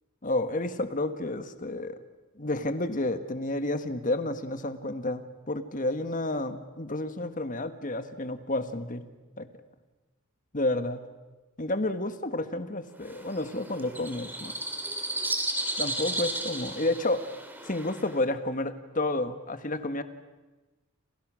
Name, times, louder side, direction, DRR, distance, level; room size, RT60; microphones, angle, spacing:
voice 1, 0.2-2.0 2.4-9.1 9.4-9.5 10.5-11.0 11.6-14.5 15.8-17.2 17.6-20.0, left 2 dB, 35° left, 9 dB, 1.5 m, -30 dB
sound 1, 13.0-18.2, right 2 dB, 10° right, 2.8 m, -34 dB
29.0 x 27.0 x 6.3 m, 1.2 s
head